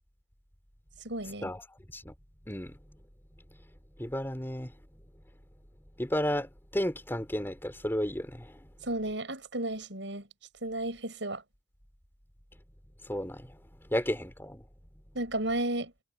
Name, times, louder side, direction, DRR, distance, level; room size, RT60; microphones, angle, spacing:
voice 1, 1.0-1.5 8.8-10.3 10.6-11.4 15.1-15.9, right 1 dB, 80° right, 5.8 m, -33 dB
voice 2, 2.5-2.8 4.0-4.7 6.0-8.6 13.1-13.6 13.9-14.6, equal, 10° left, 3.8 m, -33 dB
head